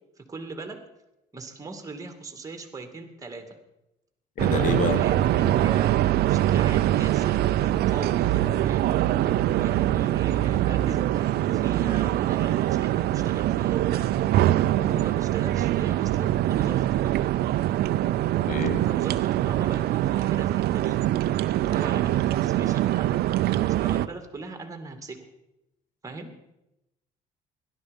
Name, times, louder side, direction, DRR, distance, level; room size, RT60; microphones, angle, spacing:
voice 1, 0.2-0.8 1.3-3.6 4.9-6.0 6.3-8.9 9.6-14.0 14.8-17.1 18.8-21.0 21.6-25.3 26.0-26.3, right 3 dB, 20° right, 7 dB, 2.4 m, -39 dB
voice 2, 4.4-5.0 18.5-18.8, left 7 dB, 50° left, 11 dB, 1.2 m, -28 dB
sound 1, 4.4-24.1, right 13 dB, 70° right, 0.6 m, -23 dB
17.0 x 12.0 x 5.3 m, 0.90 s
cardioid pair, 110°, 17 cm